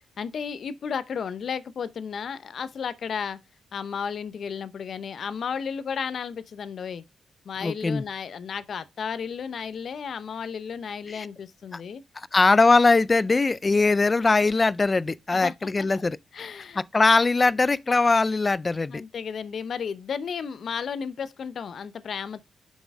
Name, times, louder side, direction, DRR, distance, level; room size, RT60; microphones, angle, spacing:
voice 1, 0.2-3.4 3.7-7.0 7.4-12.0 15.3-15.9 16.3-16.8 18.9-22.4, left 6 dB, 60° left, 0.7 m, -33 dB
voice 2, 7.6-8.0 11.1-11.3 12.2-16.5 16.8-19.0, left 3 dB, 25° left, 0.3 m, -21 dB
7.0 x 6.3 x 3.5 m
cardioid pair, 120°, 0 cm